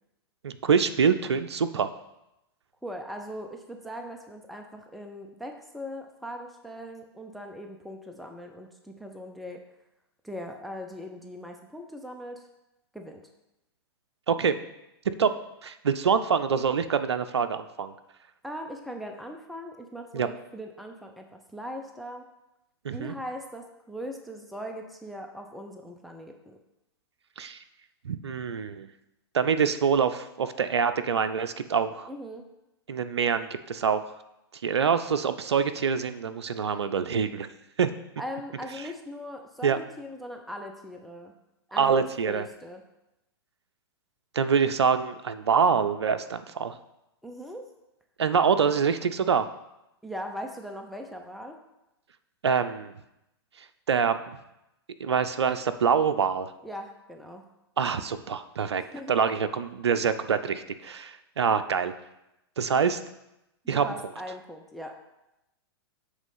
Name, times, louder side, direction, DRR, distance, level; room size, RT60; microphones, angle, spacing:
voice 1, 0.4-1.9 14.3-14.6 15.2-15.3 15.6-17.9 20.1-20.3 22.8-23.1 27.4-27.6 28.0-28.9 29.3-32.1 32.9-34.0 34.6-37.5 37.8-37.9 39.6-39.8 41.8-42.5 44.3-46.8 48.2-49.5 52.4-52.9 53.9-54.2 55.0-56.5 57.8-58.8 59.1-61.9 62.6-63.0 63.7-63.9, right 6 dB, 90° right, 10 dB, 0.4 m, -25 dB
voice 2, 2.8-9.6 10.2-12.5 12.9-13.2 18.4-22.3 22.9-26.6 32.1-32.5 38.2-41.3 41.7-41.9 42.3-42.8 47.2-47.7 50.0-51.6 56.6-57.4 58.8-59.2 63.6-64.9, equal, ahead, 3 dB, 0.6 m, -40 dB
8.0 x 3.2 x 5.5 m, 0.89 s
hypercardioid pair, 115°, 14 cm